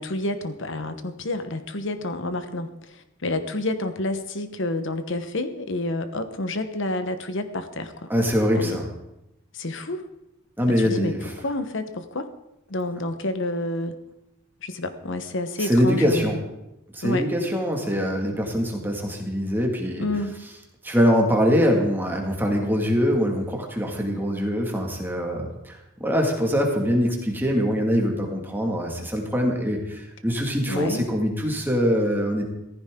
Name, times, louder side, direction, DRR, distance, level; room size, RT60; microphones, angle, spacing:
voice 1, 0.0-8.1 8.6-8.8 9.5-10.0 10.8-12.3 12.7-13.9 14.6-16.4 17.0-17.2 20.0-20.4 30.7-31.1, left 2 dB, 60° left, 9 dB, 1.2 m, -29 dB
voice 2, 8.1-8.9 10.6-11.2 15.6-16.4 16.9-20.1 20.8-32.5, equal, 10° right, 1 dB, 2.1 m, -23 dB
15.5 x 14.5 x 3.8 m, 0.88 s
head